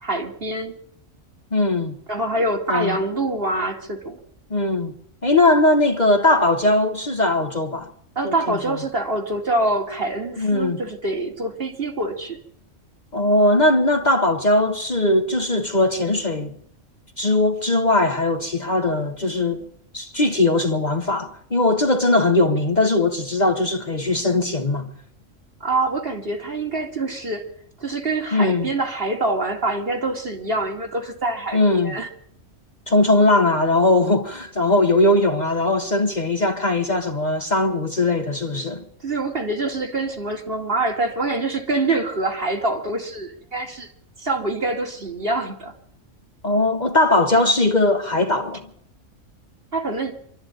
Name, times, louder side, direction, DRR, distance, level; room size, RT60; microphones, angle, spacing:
voice 1, 0.0-0.7 2.1-4.2 8.2-12.4 25.6-27.5 27.8-32.1 39.0-43.9 44.2-45.7 49.7-50.2, right 2 dB, 45° right, 2.6 m, -25 dB
voice 2, 1.5-2.0 2.7-3.0 4.5-4.9 5.2-7.9 8.2-8.8 10.4-10.8 13.1-16.5 17.2-19.7 19.9-24.9 28.3-28.7 31.5-31.9 32.9-38.8 46.4-48.7, left 2 dB, 35° left, 1.2 m, -19 dB
25.0 x 12.5 x 9.0 m
omnidirectional pair, 1.3 m